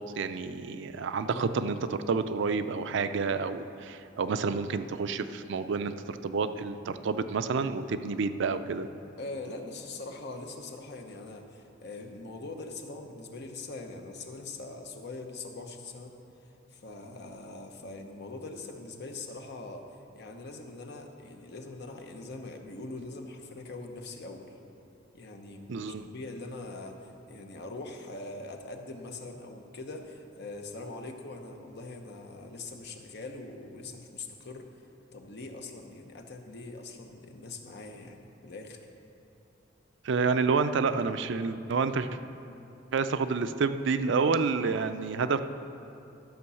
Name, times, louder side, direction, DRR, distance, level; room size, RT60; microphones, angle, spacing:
voice 1, 0.2-8.9 25.7-26.1 40.0-42.1 42.9-45.4, right 4 dB, 65° right, 10 dB, 0.4 m, -29 dB
voice 2, 9.2-16.1 16.7-19.9 20.1-24.5 25.1-34.7 35.1-38.8, left 2 dB, 60° left, 4 dB, 1.0 m, -42 dB
12.5 x 5.4 x 7.0 m, 2.8 s
head